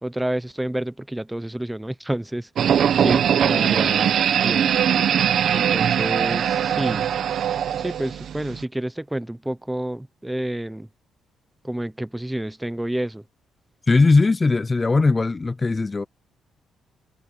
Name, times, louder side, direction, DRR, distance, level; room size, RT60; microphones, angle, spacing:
voice 1, 0.0-2.5 3.0-4.8 5.5-7.1 7.8-10.9 11.6-13.2, right 1 dB, 5° right, 0.8 m, -29 dB
sound 1, 2.6-8.6, right 9 dB, 65° right, 1.3 m, -21 dB
voice 2, 13.9-16.1, left 3 dB, 25° left, 0.6 m, -19 dB
cardioid pair, 90°, 0 cm